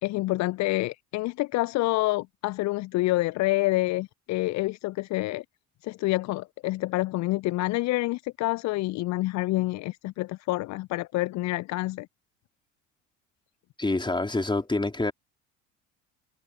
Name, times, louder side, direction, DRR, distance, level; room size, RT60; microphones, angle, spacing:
voice 1, 0.0-5.4 5.8-12.1, left 19 dB, 50° left, 0.8 m, -27 dB
voice 2, 13.8-15.1, left 2 dB, 10° left, 4.5 m, -26 dB
figure-of-eight pair, 55°, 37 cm